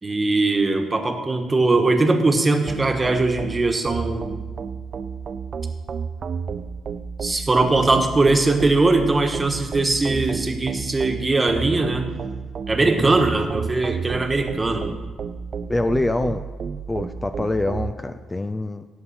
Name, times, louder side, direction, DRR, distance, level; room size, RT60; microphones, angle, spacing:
voice 1, 0.0-4.3 7.2-12.1 12.7-14.8, right 3 dB, 25° right, 5 dB, 1.4 m, -20 dB
sound 1, 2.7-17.9, right 6 dB, 50° right, 0.5 m, -31 dB
voice 2, 12.8-13.1 15.7-16.4 16.9-18.9, left 2 dB, 20° left, 9 dB, 0.4 m, -25 dB
17.0 x 7.1 x 4.3 m, 1.4 s
cardioid pair, 90°, 0 cm